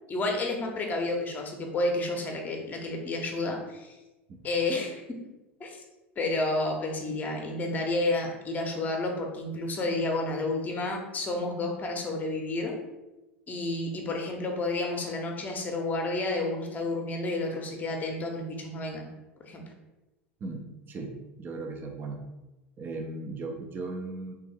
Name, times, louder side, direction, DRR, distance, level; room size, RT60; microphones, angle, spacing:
voice 1, 0.1-4.0 4.4-5.0 5.6-5.8 6.2-12.8 13.5-19.1 19.4-19.6, left 2 dB, 25° left, 2 dB, 0.7 m, -30 dB
voice 2, 20.4-22.2 22.8-24.3, right 3 dB, 30° right, 3 dB, 0.4 m, -37 dB
3.3 x 2.3 x 3.3 m, 1.0 s
figure-of-eight pair, 80°, 7 cm